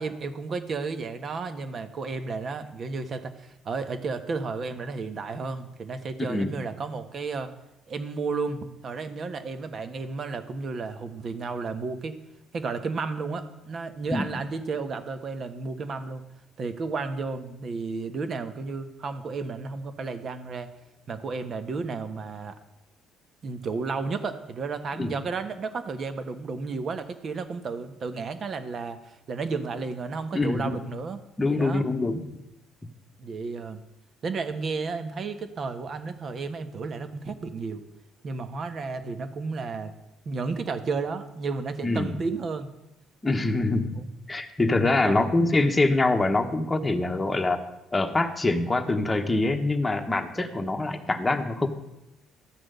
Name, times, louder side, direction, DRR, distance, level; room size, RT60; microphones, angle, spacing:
voice 1, 0.0-7.5 7.9-12.2 12.5-16.2 16.6-20.7 21.1-22.5 23.4-31.2 31.5-31.8 33.2-33.8 34.2-37.8 38.2-39.9 40.2-42.7 44.8-45.3 50.3-50.6, right 4 dB, 40° right, 10 dB, 1.3 m, -32 dB
voice 2, 30.3-30.8 31.4-32.4 41.8-42.1 43.2-47.6 47.9-51.7, left 2 dB, 15° left, 5 dB, 1.2 m, -25 dB
13.5 x 6.2 x 9.2 m, 0.91 s
cardioid pair, 130°, 0 cm